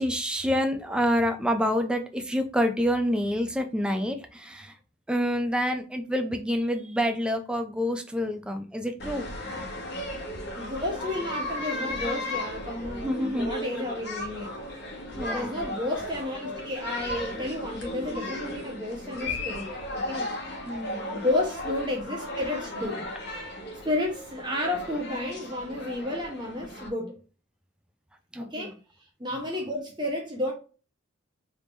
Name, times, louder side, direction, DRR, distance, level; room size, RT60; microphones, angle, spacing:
voice 1, 0.0-4.7 5.1-9.3 13.0-13.5 15.2-15.6 20.7-21.1 28.3-28.7, equal, 5° right, 0.4 m, -27 dB
sound 1, 9.0-26.9, left 1 dB, 50° left, 1.3 m, -35 dB
voice 2, 10.5-14.6 15.3-20.7 21.1-23.0 23.8-27.2 28.4-28.7 29.2-30.5, left 1 dB, 20° right, 0.8 m, -32 dB
4.8 x 3.6 x 2.5 m
head